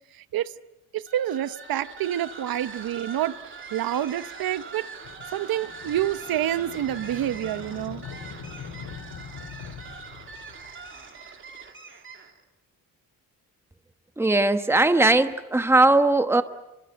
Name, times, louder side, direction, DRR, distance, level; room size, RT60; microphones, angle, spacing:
voice 1, 0.1-0.5 0.9-3.4 3.7-4.9 5.3-8.0, right 12 dB, 70° right, 1.0 m, -28 dB
sound 1, 1.1-12.4, right 4 dB, 35° right, 3.1 m, -42 dB
sound 2, 5.0-10.9, left 6 dB, 75° left, 3.7 m, -42 dB
voice 2, 14.2-16.4, right 2 dB, 5° right, 1.1 m, -19 dB
28.5 x 24.5 x 7.9 m
cardioid pair, 160°, 36 cm